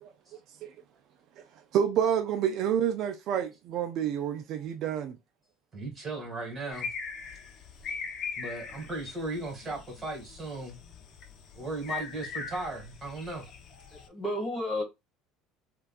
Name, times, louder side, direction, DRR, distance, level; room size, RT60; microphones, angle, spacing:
voice 1, 1.7-5.2, right 9 dB, 60° right, 0.3 m, -28 dB
voice 2, 5.7-6.9 8.4-10.8 11.5-13.5, right 2 dB, 30° right, 1.7 m, -36 dB
sound 1, 6.7-14.1, left 5 dB, 50° left, 0.7 m, -41 dB
voice 3, 13.9-14.8, left 1 dB, 15° left, 1.6 m, -32 dB
3.3 x 2.2 x 2.3 m
supercardioid pair, 95°, 0 cm